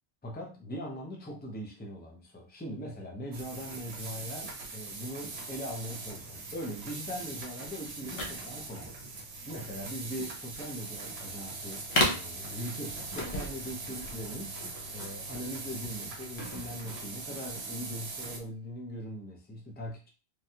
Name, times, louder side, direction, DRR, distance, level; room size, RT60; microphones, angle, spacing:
voice 1, 0.2-20.1, equal, 10° left, -1 dB, 0.5 m, -41 dB
sound 1, 3.3-18.4, right 3 dB, 70° right, 0.9 m, -41 dB
sound 2, 8.0-17.5, left 1 dB, 70° left, 1.0 m, -36 dB
3.2 x 2.3 x 2.7 m, 0.34 s
omnidirectional pair, 1.1 m